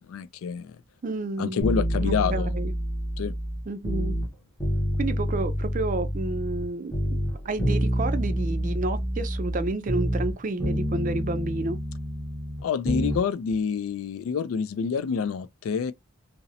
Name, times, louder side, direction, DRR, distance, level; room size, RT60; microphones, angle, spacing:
voice 1, 0.1-0.8 1.4-2.5 3.2-3.3 12.6-15.9, left 6 dB, 80° left, 0.3 m, -27 dB
voice 2, 1.0-1.6 2.0-2.7 3.7-4.2 5.0-6.9 7.5-11.8, right 2 dB, 40° right, 0.4 m, -30 dB
sound 1, 1.6-4.3 4.6-6.7 6.9-10.3 10.6-13.2 13.5-13.6, equal, 5° left, 0.7 m, -28 dB
2.6 x 2.0 x 2.6 m
head